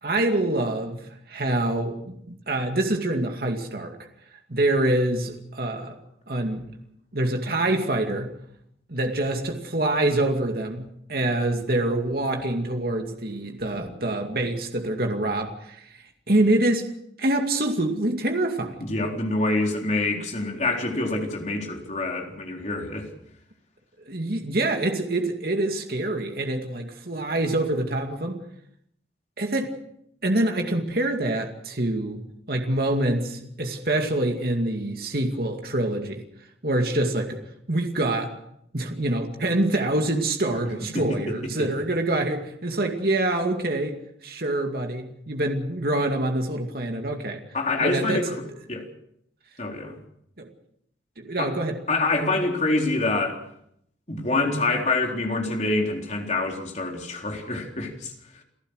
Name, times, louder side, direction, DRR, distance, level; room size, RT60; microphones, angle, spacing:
voice 1, 0.0-4.0 4.5-6.0 6.3-6.7 7.1-8.3 8.9-16.9 17.2-18.8 24.1-28.4 29.4-29.7 30.2-32.2 32.5-36.2 36.6-37.4 37.7-38.3 38.7-47.4 47.8-48.3 50.4-50.5 51.2-51.8, right 1 dB, 55° right, 3 dB, 2.4 m, -25 dB
voice 2, 18.8-23.1 40.9-41.7 47.5-48.3 48.7-48.9 49.6-50.0 51.4-51.6 51.9-53.4 54.1-58.1, left 2 dB, 40° left, 1 dB, 4.0 m, -26 dB
28.5 x 15.0 x 6.5 m, 0.73 s
head